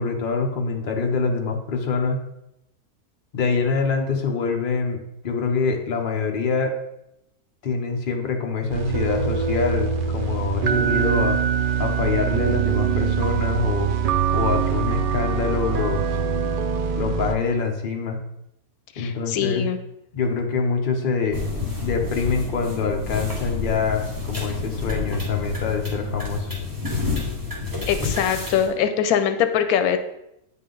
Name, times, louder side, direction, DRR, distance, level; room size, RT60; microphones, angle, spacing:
voice 1, 0.0-2.2 3.3-6.8 7.6-11.4 11.8-13.9 14.3-16.0 17.0-18.2 19.0-19.6 20.1-21.4 21.8-26.5, left 4 dB, 45° left, 2 dB, 0.9 m, -25 dB
sound 1, 8.7-17.3, right 7 dB, 70° right, 0.5 m, -23 dB
voice 2, 19.0-19.8 27.9-30.0, left 8 dB, 90° left, 9 dB, 1.1 m, -22 dB
sound 2, 21.3-28.7, left 4 dB, 15° right, 1.6 m, -29 dB
9.0 x 3.8 x 3.8 m, 0.84 s
omnidirectional pair, 1.5 m